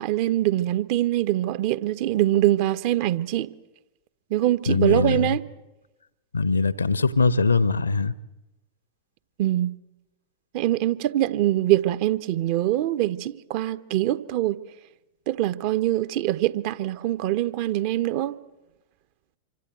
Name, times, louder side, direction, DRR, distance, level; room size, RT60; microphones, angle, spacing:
voice 1, 0.0-3.5 4.3-5.4 9.4-9.7 10.5-14.6 15.3-18.4, right 14 dB, 45° right, 1.2 m, -23 dB
voice 2, 4.7-5.4 6.3-8.1, left 3 dB, 75° left, 1.1 m, -22 dB
27.0 x 24.5 x 7.8 m
figure-of-eight pair, 90°, 0 cm